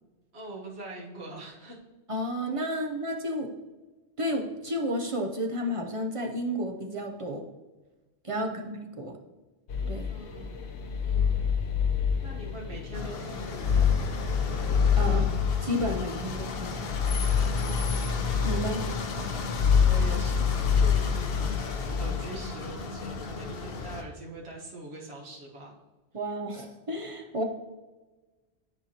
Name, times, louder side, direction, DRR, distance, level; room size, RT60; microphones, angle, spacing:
voice 1, 0.3-1.8 8.3-8.8 10.1-10.6 11.0-11.5 12.2-14.2 17.6-18.1 19.1-25.7, right 1 dB, 75° right, -3 dB, 1.5 m, -43 dB
voice 2, 2.1-3.5 4.2-7.5 8.2-9.2 9.9-10.1 15.0-16.8 18.4-18.8 26.1-27.4, equal, 35° right, 2 dB, 0.6 m, -32 dB
sound 1, 9.7-24.0, left 7 dB, 90° left, 1.1 m, -27 dB
sound 2, 12.9-24.0, left 3 dB, 65° left, 0.9 m, -35 dB
10.5 x 4.5 x 2.8 m, 1.2 s
omnidirectional pair, 1.1 m